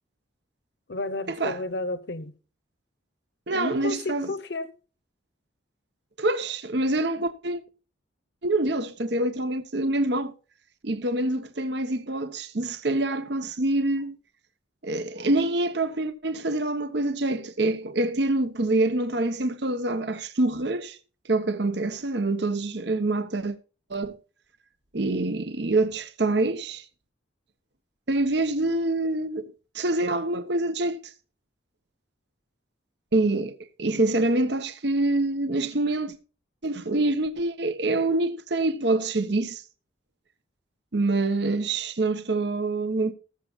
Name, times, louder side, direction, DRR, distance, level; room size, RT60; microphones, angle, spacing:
voice 1, 0.9-2.3 3.5-4.7, left 2 dB, 60° left, 1.0 m, -32 dB
voice 2, 3.5-4.3 6.2-7.6 8.4-10.3 10.8-14.2 14.8-21.0 21.3-23.6 23.9-24.2 24.9-26.8 28.1-29.5 29.7-31.0 33.1-36.2 36.6-39.6 40.9-43.1, right 2 dB, 55° right, 1.0 m, -26 dB
19.0 x 7.2 x 2.4 m
head